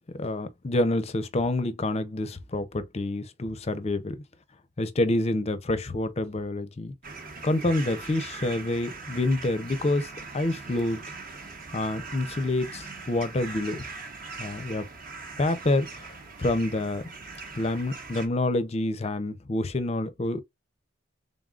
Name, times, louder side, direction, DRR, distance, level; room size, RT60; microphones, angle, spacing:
voice 1, 0.1-4.2 4.8-6.9 7.4-11.0 11.7-13.8 14.4-14.9 15.4-16.1 16.4-17.0 17.6-20.4, left 2 dB, 30° left, 0.5 m, -27 dB
sound 1, 7.0-18.3, right 4 dB, 45° right, 0.9 m, -41 dB
3.8 x 3.7 x 2.4 m
head